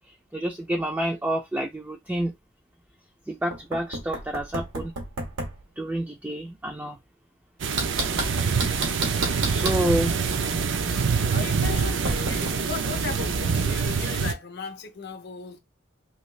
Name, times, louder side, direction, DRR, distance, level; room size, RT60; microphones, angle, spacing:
voice 1, 0.3-2.3 3.3-4.9 5.8-7.0 9.4-10.2, right 1 dB, 10° right, 0.4 m, -28 dB
Knock, 3.5-5.6 7.8-9.9 12.1-12.6, right 2 dB, 90° right, 1.3 m, -31 dB
sound 1, 7.6-14.3, right 5 dB, 65° right, 0.5 m, -25 dB
voice 2, 11.2-15.6, left 6 dB, 55° left, 0.6 m, -36 dB
2.7 x 2.7 x 3.1 m
head